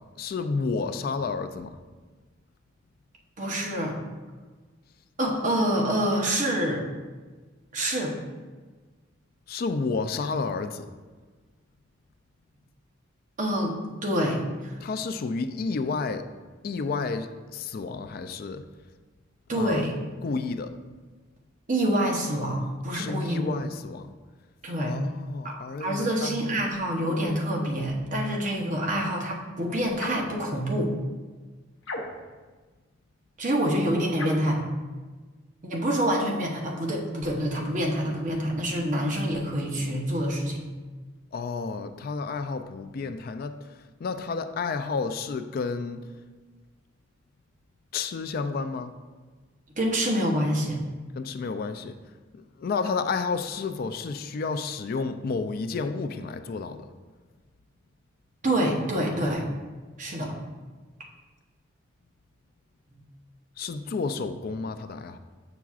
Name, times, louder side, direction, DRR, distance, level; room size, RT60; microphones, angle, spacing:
voice 1, 0.2-1.8 9.5-10.9 14.8-16.3 16.6-18.6 19.5-19.9 20.2-20.7 22.9-24.1 24.8-26.6 41.3-46.0 47.9-48.9 51.2-52.0 52.3-56.9 63.6-65.2, left 4 dB, 45° left, 9 dB, 0.3 m, -31 dB
voice 2, 3.4-4.0 5.2-6.8 7.7-8.2 13.4-14.8 19.5-19.9 21.7-23.5 24.6-24.9 25.4-30.9 33.4-34.7 35.6-40.7 49.8-50.8 58.4-59.5 60.0-60.3 62.9-63.0, right 1 dB, 40° right, -1 dB, 0.9 m, -27 dB
sound 1, 30.0-30.3 31.8-32.4 34.1-34.6, left 1 dB, 65° left, 0.7 m, -35 dB
7.0 x 5.9 x 2.4 m, 1.3 s
head